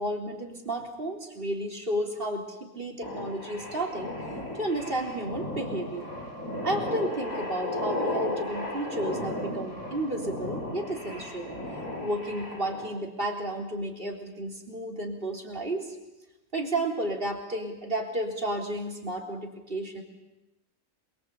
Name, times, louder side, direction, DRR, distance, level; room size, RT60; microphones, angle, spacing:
voice 1, 0.0-4.2 4.6-6.1 6.6-11.5 12.0-16.0 16.5-20.0, right 1 dB, 40° right, 1 dB, 4.0 m, -32 dB
sound 1, 3.0-12.9, left 1 dB, 75° left, 5.5 m, -35 dB
27.0 x 23.0 x 8.3 m, 0.99 s
omnidirectional pair, 1.5 m